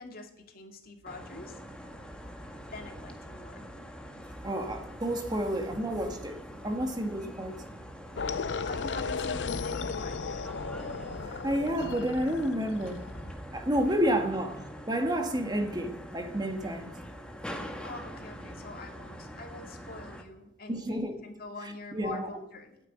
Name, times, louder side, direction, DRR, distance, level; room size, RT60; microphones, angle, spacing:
voice 1, 0.0-1.6 2.7-3.6 8.7-10.3 14.1-14.2 17.5-22.8, left 2 dB, 55° left, 4 dB, 2.4 m, -44 dB
sound 1, 1.1-20.2, equal, 5° left, 1.7 m, -44 dB
voice 2, 4.4-6.4 6.6-7.6 11.4-13.0 13.5-14.5 14.9-16.9 20.7-21.1 21.9-22.3, equal, 25° right, 5 dB, 1.9 m, -30 dB
sound 2, 8.2-13.3, left 5 dB, 90° left, 0.7 m, -35 dB
14.0 x 9.3 x 9.5 m, 0.83 s
head